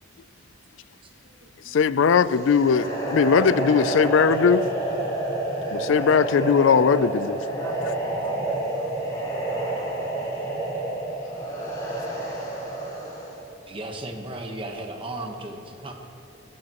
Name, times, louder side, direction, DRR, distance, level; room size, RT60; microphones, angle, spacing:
voice 1, 1.7-4.7 5.7-7.4 7.8-7.9, left 6 dB, 65° left, 16 dB, 0.4 m, -19 dB
sound 1, 2.3-13.4, right 2 dB, 20° left, 3.8 m, -29 dB
voice 2, 7.6-9.1 12.5-13.1 13.5-13.6, right 2 dB, 85° right, -1 dB, 2.3 m, -50 dB
voice 3, 13.7-15.9, right 1 dB, 25° right, 2 dB, 1.1 m, -35 dB
18.5 x 15.0 x 3.0 m, 2.9 s
head